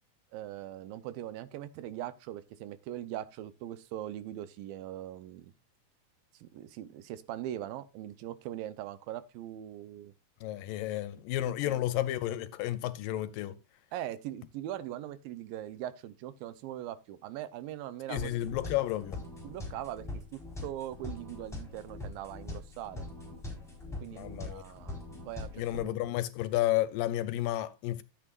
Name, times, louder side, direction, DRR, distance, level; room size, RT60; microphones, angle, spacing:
voice 1, 0.3-5.5 6.3-10.1 11.5-11.8 13.9-18.5 19.4-20.0 20.3-23.1 24.0-25.0 25.3-26.0, right 12 dB, 80° right, 2.5 m, -41 dB
voice 2, 10.4-13.6 18.1-19.2 24.1-24.6 25.6-28.0, left 14 dB, 80° left, 2.2 m, -32 dB
sound 1, 18.2-25.8, left 2 dB, ahead, 3.7 m, -42 dB
12.5 x 8.5 x 2.4 m
omnidirectional pair, 4.1 m